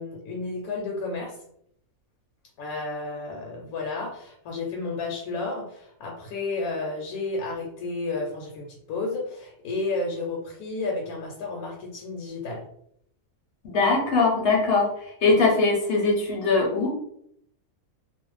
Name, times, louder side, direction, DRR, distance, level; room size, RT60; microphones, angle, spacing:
voice 1, 0.0-1.4 2.6-12.6, left 3 dB, 80° left, 0 dB, 1.0 m, -32 dB
voice 2, 13.6-17.0, left 3 dB, 55° left, 0 dB, 0.7 m, -22 dB
2.4 x 2.1 x 3.1 m, 0.69 s
omnidirectional pair, 1.5 m